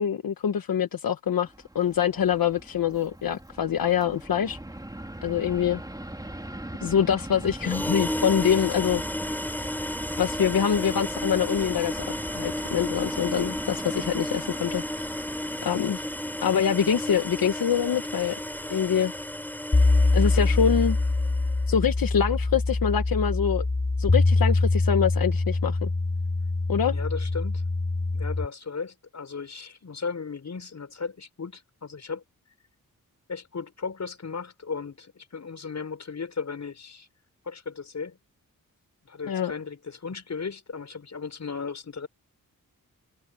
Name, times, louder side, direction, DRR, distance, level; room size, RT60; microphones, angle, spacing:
voice 1, 0.0-4.6 5.2-5.8 6.8-9.0 10.2-12.0 12.3-15.2 15.6-16.0 16.4-18.4 18.7-19.1 20.1-21.0 21.7-23.7 24.0-25.9 26.7-26.9 39.3-39.5, left 8 dB, 85° left, 1.3 m, -25 dB
Fixed-wing aircraft airplane, 1.4-19.2, right 1 dB, 10° right, 4.0 m, -41 dB
sound 1, 7.6-21.5, left 1 dB, 5° left, 4.8 m, -33 dB
sound 2, 19.7-28.5, left 2 dB, 25° left, 3.0 m, -24 dB
voice 2, 26.9-27.6 28.1-32.2 33.3-37.1 37.4-38.2 39.0-42.1, left 5 dB, 55° left, 5.7 m, -36 dB
wide cardioid pair, 115°, 34 cm